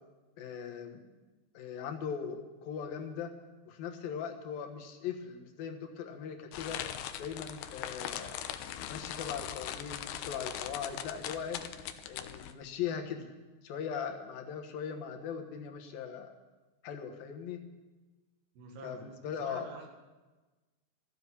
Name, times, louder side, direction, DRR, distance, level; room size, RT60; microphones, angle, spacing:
voice 1, 0.4-1.0 1.5-3.3 3.7-6.8 7.2-8.3 8.9-11.6 12.1-13.3 13.6-16.3 16.8-17.6 18.8-19.7, left 7 dB, 70° left, 3 dB, 3.0 m, -39 dB
sound 1, 6.5-12.5, left 10 dB, 85° left, 2.7 m, -40 dB
voice 2, 18.6-19.1 19.4-19.9, right 2 dB, 85° right, 1 dB, 4.0 m, -47 dB
14.5 x 7.8 x 9.8 m, 1.2 s
omnidirectional pair, 4.5 m